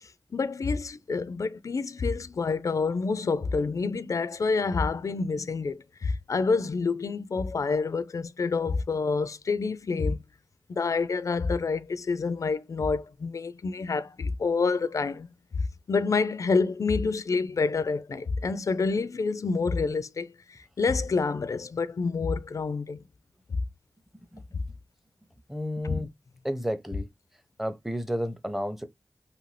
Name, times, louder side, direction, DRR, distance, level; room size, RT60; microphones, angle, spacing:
voice 1, 0.0-10.2 10.7-15.3 15.9-23.0 24.5-24.6 25.8-26.0, left 4 dB, 55° left, 0.3 m, -28 dB
voice 2, 25.5-26.1 26.4-27.1 27.6-28.8, equal, 5° right, 0.6 m, -31 dB
2.7 x 2.5 x 3.2 m
cardioid pair, 55°, 6 cm